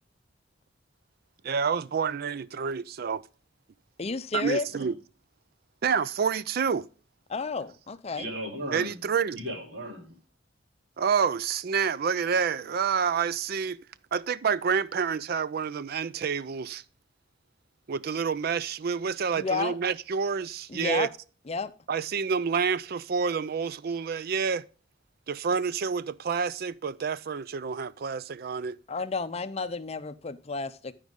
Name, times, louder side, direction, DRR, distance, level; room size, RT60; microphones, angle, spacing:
voice 1, 1.4-3.2 4.3-5.0 5.8-6.9 8.7-9.4 11.0-13.8 14.1-16.8 17.9-21.1 21.9-24.6 25.3-28.8, right 6 dB, 55° right, 0.4 m, -28 dB
voice 2, 4.0-4.7 7.3-8.3 19.3-19.8 20.7-21.1 21.5-21.7 28.9-30.9, left 4 dB, 35° left, 0.6 m, -31 dB
voice 3, 8.1-10.1, equal, 75° right, 3.1 m, -37 dB
13.0 x 5.0 x 3.6 m
head